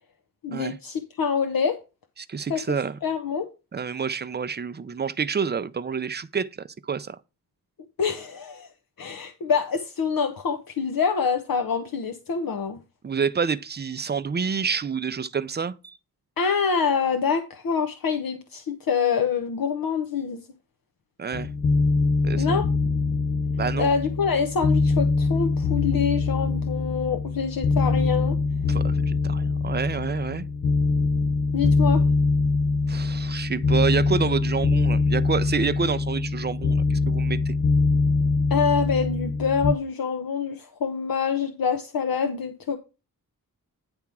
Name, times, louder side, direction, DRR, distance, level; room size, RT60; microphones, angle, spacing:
voice 1, 0.4-1.8 2.5-3.5 8.0-8.7 9.0-12.8 16.4-20.4 22.3-22.7 23.8-28.4 31.5-32.0 38.5-42.8, left 6 dB, 70° left, 0.9 m, -26 dB
voice 2, 2.2-3.0 3.7-6.5 6.9-7.2 13.0-16.0 21.2-21.5 22.2-22.6 23.6-23.9 28.7-30.5 32.9-37.6, right 6 dB, 30° right, 0.5 m, -28 dB
sound 1, 21.3-39.7, left 3 dB, 30° left, 0.4 m, -23 dB
9.6 x 3.5 x 6.0 m
wide cardioid pair, 115°, 36 cm